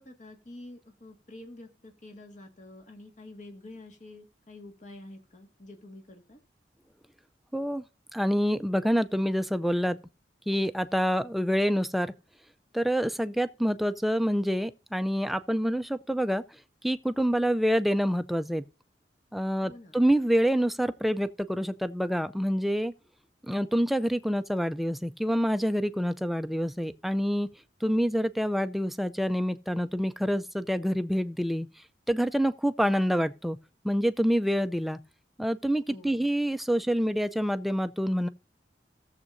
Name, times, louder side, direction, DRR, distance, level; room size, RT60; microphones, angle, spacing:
voice 1, 0.0-6.4 19.6-20.0 35.9-36.3, left 2 dB, 45° left, 1.8 m, -48 dB
voice 2, 7.5-7.8 8.1-10.0 10.5-12.1 12.7-16.4 16.8-18.6 19.3-22.9 23.5-27.5 27.8-31.7 32.1-33.6 33.8-35.0 35.4-38.3, equal, ahead, 0.4 m, -27 dB
17.5 x 7.3 x 2.6 m
head